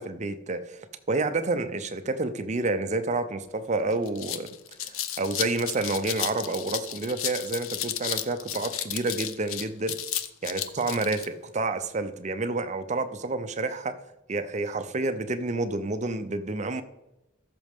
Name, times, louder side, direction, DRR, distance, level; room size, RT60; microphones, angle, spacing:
voice 1, 0.0-4.5 5.2-9.9 10.4-14.0 14.3-16.8, right 3 dB, 35° right, 10 dB, 0.6 m, -29 dB
sound 1, 3.5-3.6 3.9-11.3, left 10 dB, 80° left, 0.6 m, -33 dB
14.0 x 6.5 x 3.5 m, 0.94 s
head